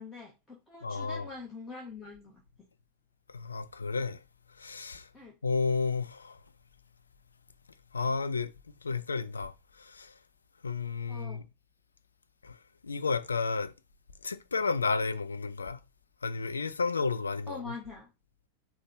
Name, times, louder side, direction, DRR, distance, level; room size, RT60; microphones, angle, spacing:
voice 1, 0.0-2.7 5.1-5.4 11.1-11.4 17.5-18.1, left 3 dB, 10° left, 1.1 m, -44 dB
voice 2, 0.8-1.3 3.3-4.2 4.6-5.1 5.4-6.4 7.9-8.5 8.8-10.1 10.6-11.4 12.4-12.6 12.8-13.7 14.2-15.8 16.2-17.7, left 4 dB, 75° left, 0.4 m, -32 dB
4.6 x 2.1 x 4.6 m
figure-of-eight pair, 90°, 0 cm